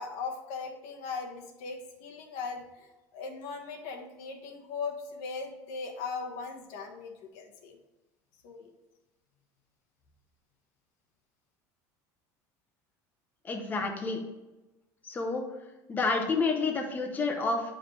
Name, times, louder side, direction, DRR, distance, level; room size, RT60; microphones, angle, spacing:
voice 1, 0.0-7.8 8.4-8.7, left 4 dB, 75° left, 1 dB, 1.4 m, -39 dB
voice 2, 13.4-14.2 15.1-15.4 15.9-17.7, left 3 dB, 20° left, 2 dB, 0.9 m, -29 dB
8.6 x 5.1 x 3.3 m, 1.1 s
cardioid pair, 140°, 8 cm